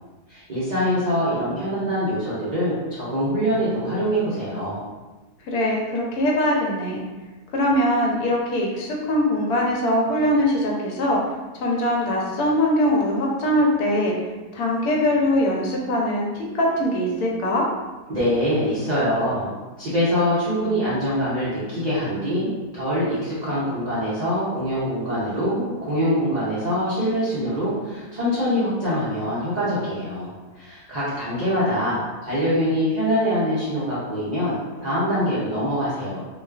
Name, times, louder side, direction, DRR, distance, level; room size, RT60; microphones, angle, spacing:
voice 1, 0.3-4.8 18.1-19.5 19.8-36.3, equal, 70° right, -10 dB, 0.4 m, -24 dB
voice 2, 5.4-7.0 7.5-11.2 11.5-14.1 14.5-17.7, left 1 dB, 80° left, -2 dB, 1.1 m, -22 dB
2.4 x 2.3 x 2.3 m, 1.2 s
omnidirectional pair, 1.6 m